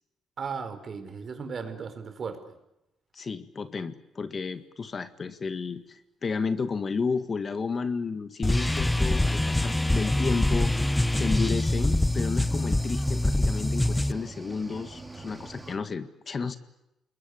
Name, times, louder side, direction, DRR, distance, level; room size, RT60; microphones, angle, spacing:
voice 1, 0.4-2.6, right 5 dB, 50° right, 8 dB, 4.8 m, -36 dB
sound 1, 2.8-9.1, left 5 dB, 55° left, 5.6 m, -49 dB
voice 2, 3.1-10.7 11.1-16.6, left 5 dB, 40° left, 11 dB, 1.8 m, -32 dB
sound 2, 8.4-14.1, left 1 dB, 10° left, 1.0 m, -24 dB
Cricket / Waves surf, 8.6-15.8, right 2 dB, 10° right, 3.7 m, -42 dB
28.0 x 21.5 x 8.6 m, 0.88 s
cardioid pair, 90°, 0 cm